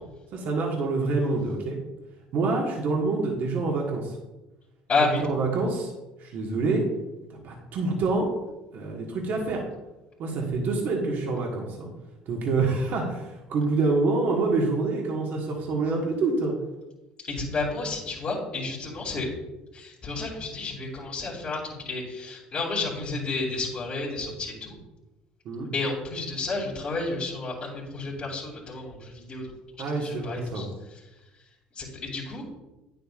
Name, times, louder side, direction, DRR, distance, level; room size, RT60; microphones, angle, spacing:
voice 1, 0.3-1.8 2.3-4.2 5.2-5.9 6.2-6.8 7.4-8.3 8.7-9.6 10.2-11.9 12.2-16.6 25.4-25.7 29.8-30.7, right 3 dB, 60° right, 0 dB, 1.6 m, -26 dB
voice 2, 4.9-5.2 17.2-19.3 19.7-24.7 25.7-29.5 30.0-30.7 31.7-32.4, left 3 dB, 45° left, -8 dB, 2.4 m, -31 dB
9.4 x 7.8 x 2.5 m, 1.0 s
supercardioid pair, 90°, 4 cm